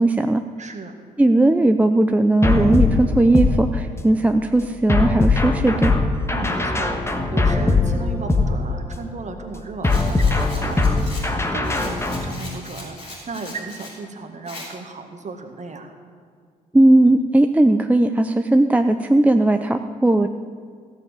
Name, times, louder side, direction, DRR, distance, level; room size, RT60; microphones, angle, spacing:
voice 1, 0.0-0.4 1.2-5.9 16.7-20.3, right 2 dB, 5° right, 7 dB, 0.5 m, -17 dB
voice 2, 0.6-1.0 6.3-15.9, right 3 dB, 35° right, 5 dB, 1.8 m, -35 dB
sound 1, 2.4-4.2 4.9-9.1 9.8-12.3, left 3 dB, 15° left, 1.5 m, -21 dB
Rattle, 9.8-14.0 14.5-14.7, left 2 dB, 75° left, 3.6 m, -39 dB
15.5 x 7.1 x 7.5 m, 2.1 s
figure-of-eight pair, 40°, 20 cm